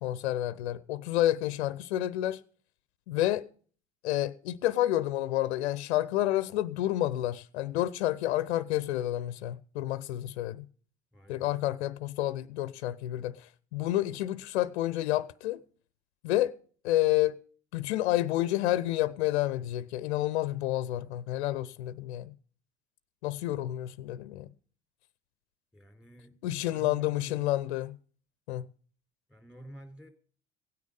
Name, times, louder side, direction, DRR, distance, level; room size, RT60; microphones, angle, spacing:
voice 1, 0.0-2.4 3.1-3.5 4.0-10.7 11.3-15.6 16.2-16.6 16.8-17.3 17.7-22.3 23.2-24.5 26.4-28.0 28.5-28.7, left 14 dB, 70° left, 0.6 m, -29 dB
voice 2, 11.1-11.5 25.7-26.4 26.7-27.5 29.3-30.1, right 1 dB, 5° right, 4.3 m, -49 dB
16.5 x 9.6 x 5.3 m
figure-of-eight pair, 60°, 34 cm